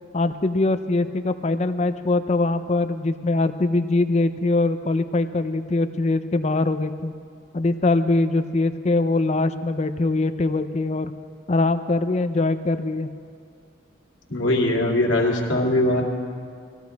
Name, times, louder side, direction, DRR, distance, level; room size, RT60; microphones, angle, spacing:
voice 1, 0.1-7.1 7.5-11.1 11.5-13.1, left 2 dB, 35° left, 10 dB, 0.5 m, -22 dB
voice 2, 14.3-16.0, left 1 dB, 85° left, -2 dB, 2.3 m, -21 dB
19.5 x 15.0 x 3.5 m, 2.2 s
head